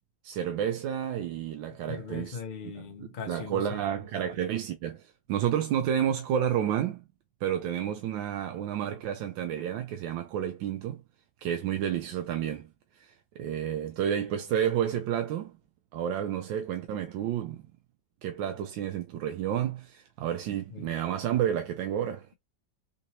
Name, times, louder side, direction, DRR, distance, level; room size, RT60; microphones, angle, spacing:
voice 1, 0.2-2.4 3.3-7.0 7.4-11.0 11.4-15.6 15.9-17.6 18.2-22.3, right 9 dB, 85° right, 1.3 m, -30 dB
voice 2, 1.9-4.3 20.7-20.9, left 6 dB, 70° left, 0.4 m, -40 dB
3.8 x 2.9 x 2.7 m
omnidirectional pair, 2.0 m